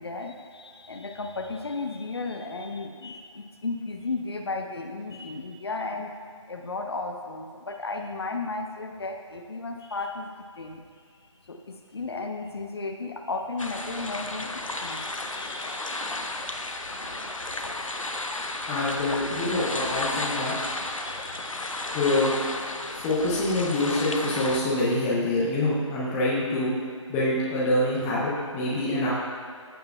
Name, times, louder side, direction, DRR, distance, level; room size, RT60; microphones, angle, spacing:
voice 1, 0.0-6.1 6.5-10.8 11.4-16.2 17.1-17.4 20.5-21.9, left 3 dB, 50° left, 4 dB, 0.8 m, -35 dB
sound 1, 13.6-24.6, left 2 dB, 85° left, 0.8 m, -33 dB
voice 2, 18.7-20.5 21.9-22.3 23.0-26.7 27.1-29.1, left 1 dB, 5° left, -7 dB, 0.6 m, -25 dB
14.5 x 6.7 x 2.2 m, 2.1 s
figure-of-eight pair, 150°, 17 cm